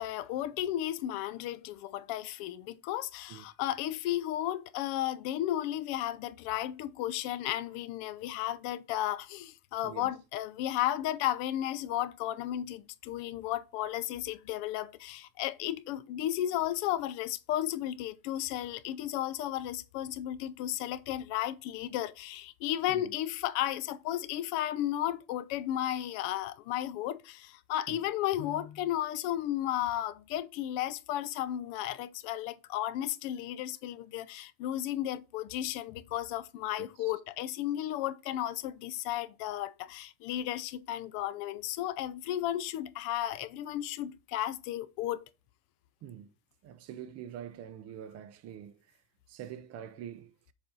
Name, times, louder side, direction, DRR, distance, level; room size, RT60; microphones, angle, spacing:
voice 1, 0.0-45.2, left 12 dB, 60° left, 0.7 m, -34 dB
voice 2, 36.8-37.1 46.0-46.3 46.6-49.0 49.3-50.5, right 9 dB, 35° right, 0.4 m, -45 dB
7.0 x 2.6 x 5.4 m
supercardioid pair, 130°, 45 cm